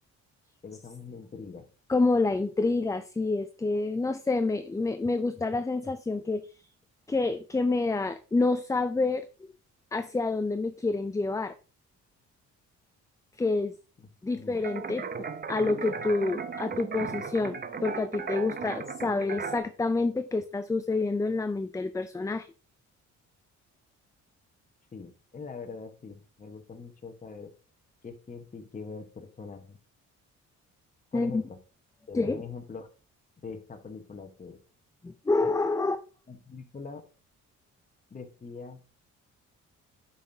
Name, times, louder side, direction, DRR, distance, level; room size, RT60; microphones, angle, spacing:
voice 1, 0.6-1.7 14.0-14.1 14.3-14.6 24.9-27.5 28.0-29.8 31.1-31.6 32.1-32.9 33.4-34.6 36.3-37.0 38.1-38.8, left 4 dB, 25° left, 4 dB, 1.3 m, -42 dB
voice 2, 1.9-6.5 7.1-9.3 9.9-11.5 13.4-13.7 14.2-15.0 15.5-17.6 17.8-22.5 31.1-31.4 32.1-32.4 35.0-36.0, left 3 dB, 10° left, 10 dB, 0.4 m, -28 dB
sound 1, 14.6-19.6, right 5 dB, 30° right, 0.7 m, -36 dB
8.3 x 5.8 x 2.8 m, 0.35 s
cardioid pair, 90°, 30 cm